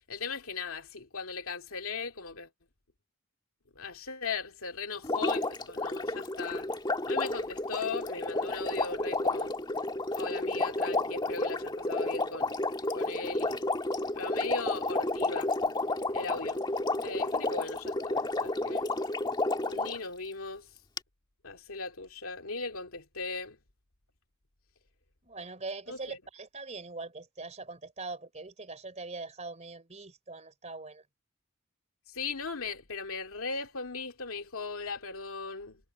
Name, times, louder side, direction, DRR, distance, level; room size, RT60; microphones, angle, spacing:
voice 1, 0.1-2.5 3.8-6.7 7.1-9.5 10.2-12.5 12.9-13.6 14.1-15.5 16.1-16.6 17.0-18.9 19.7-20.7 21.4-23.6 25.9-26.2 32.1-35.8, left 4 dB, 85° left, 2.3 m, -38 dB
Water, 5.0-20.0 21.0-21.1, left 2 dB, 20° left, 2.0 m, -31 dB
voice 2, 25.2-31.0, right 3 dB, 35° right, 3.6 m, -42 dB
head